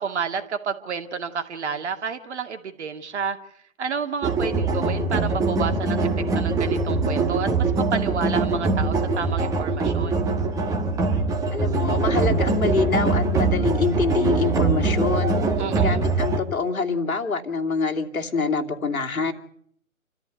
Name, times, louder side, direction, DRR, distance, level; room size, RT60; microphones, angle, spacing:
voice 1, 0.0-3.4 3.8-10.2 15.6-16.0, right 6 dB, 50° right, 6 dB, 2.5 m, -30 dB
sound 1, 4.2-16.4, right 3 dB, 10° right, 1.6 m, -23 dB
voice 2, 11.5-15.4 15.8-19.3, left 4 dB, 80° left, 3 dB, 2.9 m, -25 dB
28.0 x 14.0 x 9.3 m, 0.66 s
figure-of-eight pair, 140°, 42 cm